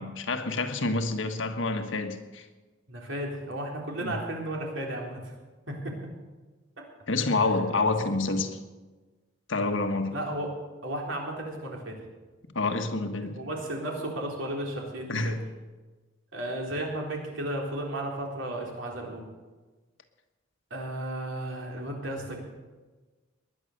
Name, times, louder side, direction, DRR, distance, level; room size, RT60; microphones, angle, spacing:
voice 1, 0.0-2.5 4.0-4.2 7.1-8.6 9.5-10.2 12.5-13.4 15.1-15.4, left 3 dB, 65° left, 1.5 m, -28 dB
voice 2, 2.9-5.3 5.7-6.0 10.1-10.5 10.8-12.0 13.3-15.4 16.3-19.3 20.7-22.4, right 1 dB, 65° right, 4.0 m, -34 dB
20.0 x 10.5 x 6.7 m
head